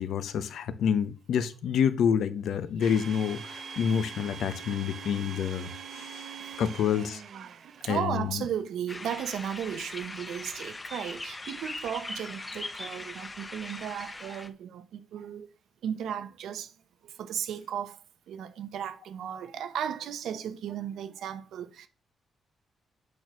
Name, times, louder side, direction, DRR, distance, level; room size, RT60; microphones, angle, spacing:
voice 1, 0.0-6.3 6.6-7.2 7.8-8.4, left 8 dB, 75° left, 0.9 m, -28 dB
Domestic sounds home sounds, 2.8-8.3, right 6 dB, 50° right, 0.8 m, -43 dB
voice 2, 7.3-15.5 15.8-16.7 17.0-18.0 18.3-21.9, right 9 dB, 85° right, 0.9 m, -35 dB
sound 1, 8.9-14.5, left 2 dB, 15° left, 0.7 m, -40 dB
8.8 x 4.5 x 6.1 m
wide cardioid pair, 160°, 0 cm